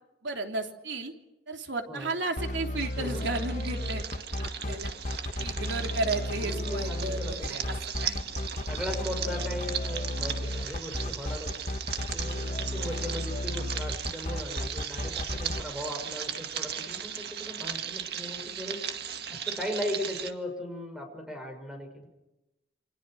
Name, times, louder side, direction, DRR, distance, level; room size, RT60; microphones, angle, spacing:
voice 1, 0.2-1.1 1.5-4.9 5.4-7.8 8.0-8.5, right 2 dB, 75° right, 3 dB, 3.4 m, -34 dB
sound 1, 2.4-15.6, left 1 dB, 40° left, 1.5 m, -33 dB
sound 2, 2.8-20.3, right 8 dB, 60° right, 2.0 m, -37 dB
voice 2, 6.3-7.8 8.7-11.6 12.0-18.8 19.3-22.1, left 1 dB, 5° right, 4 dB, 6.2 m, -38 dB
29.0 x 25.0 x 6.4 m, 0.95 s
head